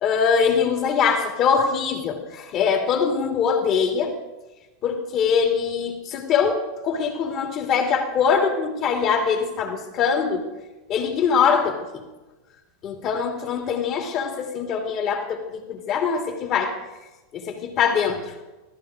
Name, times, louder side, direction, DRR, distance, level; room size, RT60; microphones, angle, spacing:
voice 1, 0.0-4.2 4.8-10.4 10.9-12.0 12.8-16.8 17.3-18.4, left 6 dB, 45° left, 3 dB, 2.8 m, -23 dB
15.0 x 14.0 x 3.8 m, 1.1 s
hypercardioid pair, 95°, 0 cm